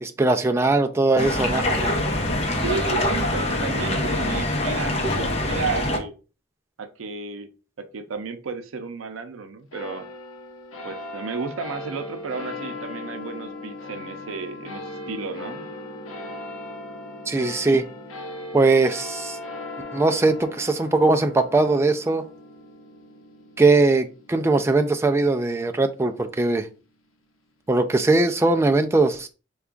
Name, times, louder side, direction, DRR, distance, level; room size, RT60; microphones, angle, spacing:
voice 1, 0.0-2.0 17.3-17.8 18.5-19.4 19.9-22.2 23.6-26.7 27.7-29.3, right 3 dB, 15° right, 7 dB, 0.3 m, -20 dB
sound 1, 1.2-6.0, left 1 dB, 30° left, 0.7 m, -24 dB
voice 2, 2.6-6.1 6.8-7.5 7.8-10.1 10.8-15.7, right 4 dB, 80° right, 8 dB, 0.5 m, -33 dB
sound 2, 9.7-26.4, left 2 dB, 85° left, 0.7 m, -38 dB
3.4 x 2.3 x 3.7 m, 0.34 s
head